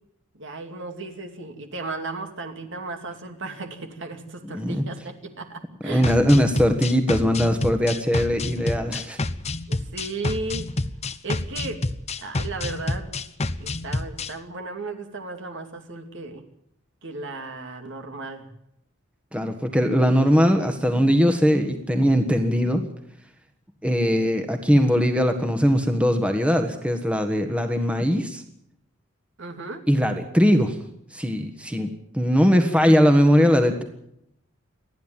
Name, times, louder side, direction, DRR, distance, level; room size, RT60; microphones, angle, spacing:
voice 1, 0.3-6.1 9.7-10.7 11.1-11.8 12.2-13.2 13.6-16.4 17.0-18.5 29.4-29.8, right 3 dB, 60° right, 5 dB, 2.7 m, -35 dB
voice 2, 4.5-4.8 5.8-9.2 19.3-22.9 23.8-28.4 29.9-30.8 31.1-31.9 32.1-33.8, equal, 5° right, 5 dB, 1.6 m, -20 dB
sound 1, 6.0-14.3, left 2 dB, 30° left, 1.0 m, -28 dB
28.5 x 10.5 x 9.1 m, 0.76 s
head